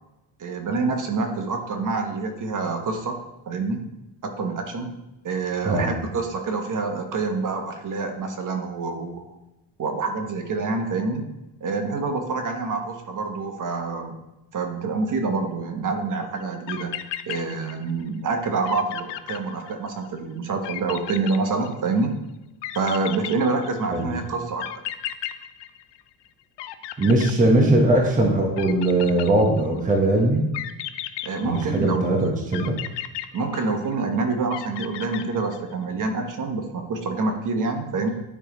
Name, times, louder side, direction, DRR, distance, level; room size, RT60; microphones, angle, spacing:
voice 1, 0.4-3.9 4.2-4.9 5.2-9.3 9.8-11.2 11.6-14.1 14.5-16.9 17.3-22.1 22.7-24.7 31.2-32.1 33.3-38.1, right 3 dB, 40° right, 4 dB, 1.1 m, -27 dB
voice 2, 5.6-6.0 23.9-24.1 27.0-30.4 31.4-32.8, right 1 dB, 15° right, 0 dB, 1.0 m, -20 dB
sound 1, 16.4-16.5 16.7-18.0 18.3-18.4 18.7-20.1 20.6-22.1 22.6-24.0 24.6-26.3 26.6-28.0 28.6-29.8 30.5-32.0 32.5-34.1 34.5-35.7, left 13 dB, 60° left, 0.5 m, -35 dB
10.0 x 3.3 x 3.8 m, 0.95 s
cardioid pair, 120°, 47 cm